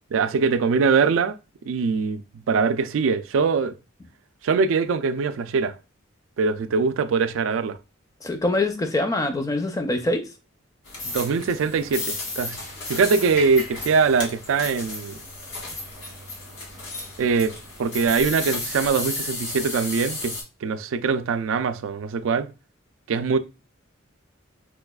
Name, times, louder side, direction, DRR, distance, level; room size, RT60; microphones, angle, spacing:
voice 1, 0.1-1.4 1.7-3.7 4.4-5.8 6.4-7.8 11.0-12.6 12.9-15.1 17.2-22.5 23.1-23.4, right 5 dB, 75° right, 0.3 m, -22 dB
voice 2, 8.2-10.3, left 2 dB, 15° left, 0.4 m, -24 dB
sound 1, 10.8-20.4, left 2 dB, 80° left, 1.4 m, -33 dB
4.8 x 2.3 x 2.2 m
head